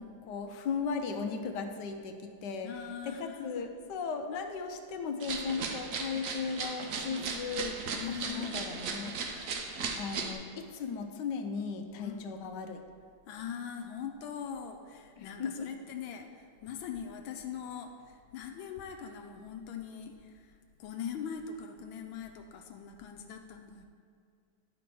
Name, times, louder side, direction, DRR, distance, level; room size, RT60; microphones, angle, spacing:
voice 1, 0.2-9.1 10.0-12.8 15.2-15.7, left 5 dB, 70° left, 6 dB, 1.2 m, -37 dB
voice 2, 2.6-3.7 4.3-4.4 7.9-8.8 12.0-12.3 13.3-23.9, left 7 dB, 85° left, 4 dB, 1.4 m, -42 dB
sound 1, 5.2-10.3, right 4 dB, 60° right, 0.9 m, -37 dB
9.8 x 5.1 x 4.6 m, 2.3 s
omnidirectional pair, 2.1 m